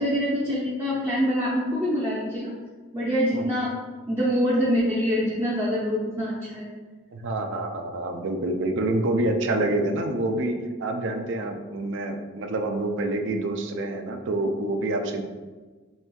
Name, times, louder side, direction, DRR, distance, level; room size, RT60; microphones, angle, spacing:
voice 1, 0.0-2.5 2.9-3.7 4.1-6.7, equal, 15° right, -8 dB, 0.6 m, -25 dB
voice 2, 7.1-15.2, right 2 dB, 60° right, 5 dB, 0.4 m, -27 dB
4.2 x 3.3 x 2.3 m, 1.3 s
head